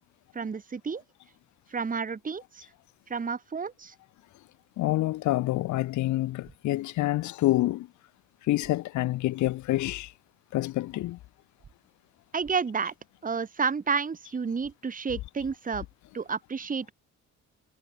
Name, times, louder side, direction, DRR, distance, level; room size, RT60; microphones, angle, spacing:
voice 1, 0.3-1.0 1.7-2.6 3.1-3.9 12.3-12.9 13.2-15.9 16.1-16.9, right 5 dB, 30° right, 1.4 m, -30 dB
voice 2, 4.8-7.9 8.4-10.1 10.5-11.2, left 16 dB, 75° left, 0.6 m, -27 dB
sound 1, 6.4-6.6 8.6-8.7 9.4-9.6 11.6-11.7 12.4-12.6 14.6-14.7 15.4-15.6, right 6 dB, 45° right, 4.4 m, -52 dB
cardioid pair, 90°, 30 cm